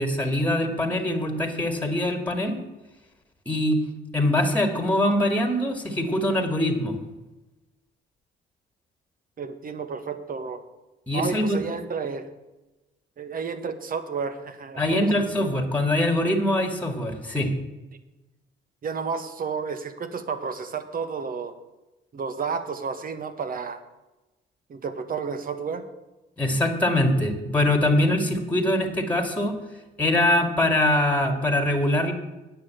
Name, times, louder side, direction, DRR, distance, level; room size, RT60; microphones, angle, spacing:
voice 1, 0.0-2.6 3.5-3.8 4.1-7.0 11.1-11.6 14.8-17.5 26.4-29.5 30.0-32.1, left 1 dB, 10° left, 4 dB, 2.1 m, -23 dB
voice 2, 9.4-10.6 11.1-12.3 13.2-15.5 18.8-21.5 22.1-23.8 24.7-25.8, right 5 dB, 45° right, 10 dB, 1.4 m, -31 dB
9.6 x 6.9 x 8.3 m, 1.1 s
cardioid pair, 90°, 20 cm